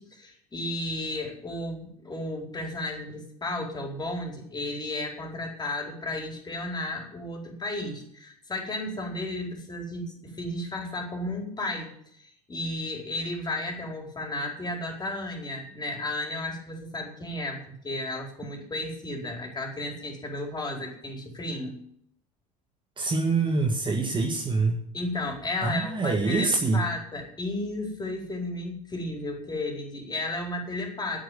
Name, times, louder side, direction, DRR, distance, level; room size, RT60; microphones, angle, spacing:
voice 1, 0.0-11.9 12.2-21.8 24.9-31.2, left 2 dB, 20° left, 1 dB, 4.5 m, -33 dB
voice 2, 23.0-24.8 25.6-26.8, right 3 dB, 25° right, 3 dB, 1.9 m, -25 dB
10.5 x 8.5 x 9.4 m, 0.69 s
hypercardioid pair, 70°, 19 cm